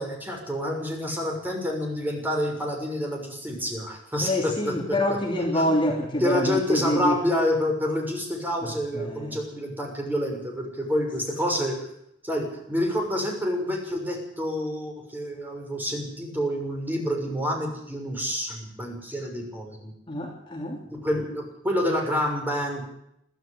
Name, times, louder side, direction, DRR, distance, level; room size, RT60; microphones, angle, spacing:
voice 1, 0.0-4.5 5.5-5.8 6.2-11.8 12.2-19.9 20.9-22.9, equal, 10° right, 1 dB, 6.4 m, -28 dB
voice 2, 4.2-7.2 8.6-9.4 20.1-20.8, left 1 dB, 25° left, 0 dB, 3.3 m, -26 dB
23.5 x 14.0 x 8.3 m, 0.76 s
head